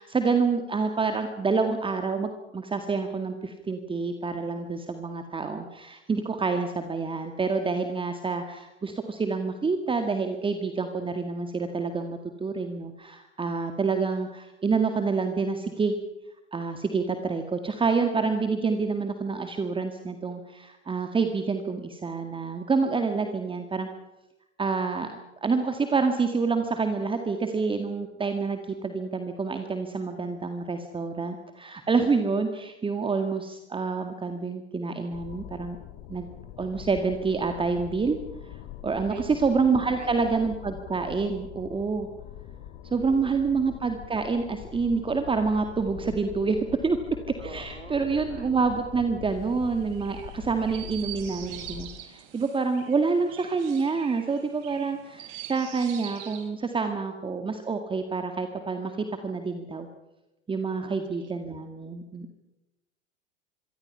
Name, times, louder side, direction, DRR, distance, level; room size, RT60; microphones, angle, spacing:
voice 1, 0.0-16.0 16.5-23.9 24.6-35.8 36.1-36.3 36.6-38.2 38.8-42.1 42.9-46.6 46.8-47.0 47.4-59.9 60.5-62.4, right 4 dB, 15° right, 6 dB, 2.0 m, -27 dB
sound 1, 35.1-51.9, left 12 dB, 45° left, 2.2 m, -43 dB
voice 2, 39.1-40.1 43.1-43.5 47.4-47.9 48.3-48.5 60.8-61.3, right 5 dB, 80° right, 9 dB, 2.4 m, -45 dB
Chirp tweet, 49.3-56.5, right 11 dB, 50° right, 4.1 m, -44 dB
26.0 x 24.0 x 5.7 m, 0.96 s
figure-of-eight pair, 85°, 35 cm